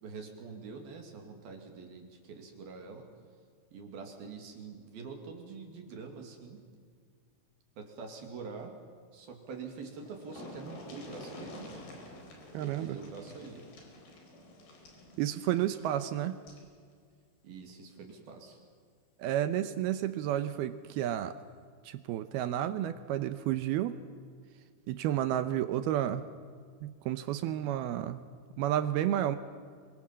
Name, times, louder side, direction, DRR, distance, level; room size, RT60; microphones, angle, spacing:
voice 1, 0.0-3.1 3.7-6.6 7.8-8.8 9.1-11.8 12.6-13.7 17.4-18.6, right 5 dB, 60° right, 4 dB, 4.0 m, -45 dB
sound 1, 9.6-9.7 9.9-16.7 18.0-18.1 18.5-18.6, left 1 dB, 60° left, 6.2 m, -49 dB
voice 2, 12.5-13.0 15.2-16.4 19.2-21.4 21.9-24.0 24.9-26.2 26.8-28.2 28.6-29.4, right 12 dB, 75° right, 12 dB, 2.4 m, -31 dB
27.5 x 24.0 x 7.5 m, 2.1 s
omnidirectional pair, 5.1 m